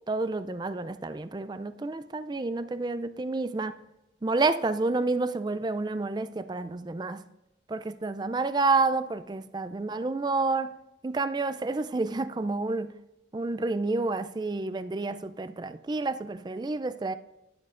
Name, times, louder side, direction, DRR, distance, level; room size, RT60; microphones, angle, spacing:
voice 1, 0.1-3.8 4.2-7.2 7.7-10.8 11.0-12.9 13.3-17.1, right 3 dB, 20° right, 0.3 m, -29 dB
11.5 x 10.5 x 2.5 m
head